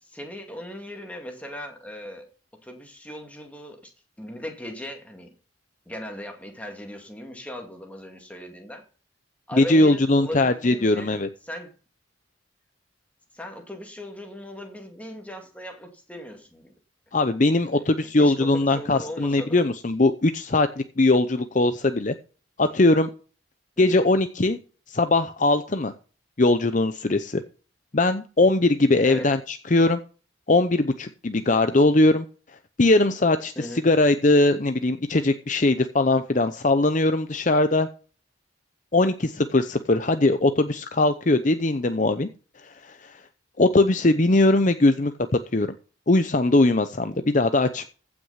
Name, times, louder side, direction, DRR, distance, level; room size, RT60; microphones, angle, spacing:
voice 1, 0.0-3.9 4.2-5.3 5.9-8.8 9.5-11.2 11.4-11.7 13.3-16.7 17.7-19.7 23.8-24.0 29.0-29.3 33.6-33.9, equal, 5° left, 2.2 m, -38 dB
voice 2, 9.6-11.3 17.1-22.1 22.6-23.1 23.8-24.6 24.9-25.9 26.4-27.4 27.9-30.0 30.5-32.2 32.8-37.9 38.9-42.3 42.6-43.2 43.6-45.1 45.5-45.7 46.1-47.9, left 2 dB, 40° left, 0.7 m, -20 dB
15.5 x 6.2 x 5.6 m
head